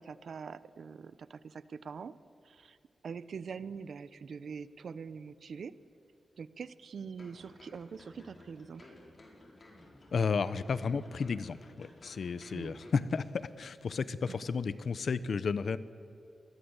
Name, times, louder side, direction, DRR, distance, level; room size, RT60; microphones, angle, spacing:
voice 1, 0.0-2.2 2.4-2.8 3.0-5.8 6.4-8.9 12.5-12.8 14.3-14.4, right 6 dB, 70° right, 16 dB, 0.9 m, -44 dB
sound 1, 7.2-13.5 13.8-13.9, left 1 dB, 40° left, 5.3 m, -55 dB
voice 2, 10.1-15.8, left 5 dB, 65° left, 15 dB, 1.0 m, -33 dB
27.0 x 20.5 x 8.2 m, 2.6 s
wide cardioid pair, 115°, 0 cm